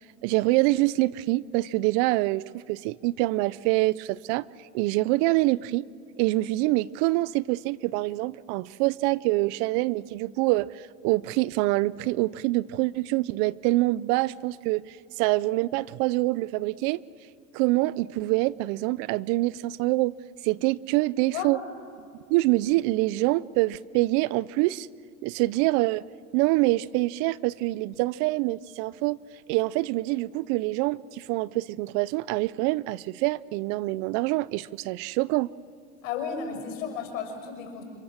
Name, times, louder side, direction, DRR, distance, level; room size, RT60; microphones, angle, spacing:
voice 1, 0.2-4.4 4.7-5.9 6.2-10.7 11.0-17.0 17.5-20.1 20.4-21.6 22.3-24.9 25.2-26.0 26.3-29.2 29.5-35.5, right 20 dB, 70° right, 0.7 m, -25 dB
voice 2, 36.0-37.8, left 7 dB, 85° left, 6.1 m, -33 dB
30.0 x 26.0 x 7.4 m
supercardioid pair, 105°, 37 cm